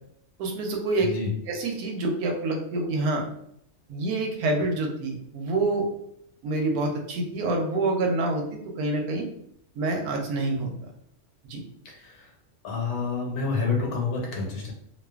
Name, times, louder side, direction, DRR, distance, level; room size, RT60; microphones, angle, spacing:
voice 1, 0.4-1.1 1.5-3.3 3.9-5.9 6.4-9.3 9.8-10.7 11.5-11.6, right 2 dB, 90° right, 2 dB, 1.1 m, -27 dB
voice 2, 1.0-1.3 11.8-12.3 12.6-14.7, left 4 dB, 90° left, -1 dB, 1.2 m, -28 dB
2.5 x 2.4 x 2.3 m, 0.72 s
omnidirectional pair, 1.5 m